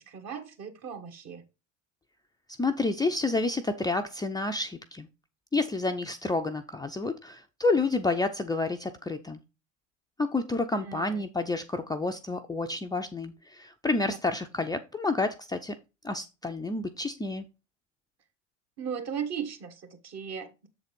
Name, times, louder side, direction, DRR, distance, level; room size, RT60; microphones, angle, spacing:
voice 1, 0.0-1.4 10.7-11.3 14.0-14.2 18.8-20.7, right 7 dB, 45° right, 1.7 m, -37 dB
voice 2, 2.6-5.1 5.5-9.4 10.2-15.7 16.0-17.4, left 3 dB, 10° left, 0.5 m, -29 dB
7.3 x 4.0 x 5.2 m
hypercardioid pair, 80°, 38 cm